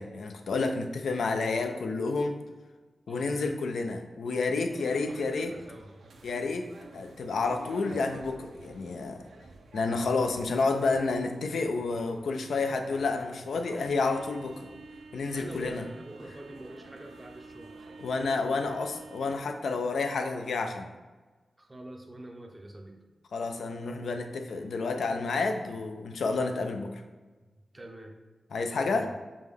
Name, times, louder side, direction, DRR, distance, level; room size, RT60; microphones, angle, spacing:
voice 1, 0.0-2.4 3.1-5.5 6.2-6.7 6.9-9.2 9.7-14.7 15.1-15.8 18.0-20.9 23.3-27.0 28.5-29.1, left 3 dB, 85° left, 6 dB, 0.4 m, -30 dB
voice 2, 3.1-3.4 4.8-5.9 15.3-17.7 18.6-18.8 21.6-23.0 24.6-24.8 27.4-27.5 27.7-28.2 28.6-29.2, right 1 dB, 15° right, 2 dB, 0.5 m, -45 dB
sound 1, 4.7-19.4, right 3 dB, 80° right, 0.4 m, -49 dB
5.1 x 2.1 x 3.4 m, 1.3 s
wide cardioid pair, 125°, 0 cm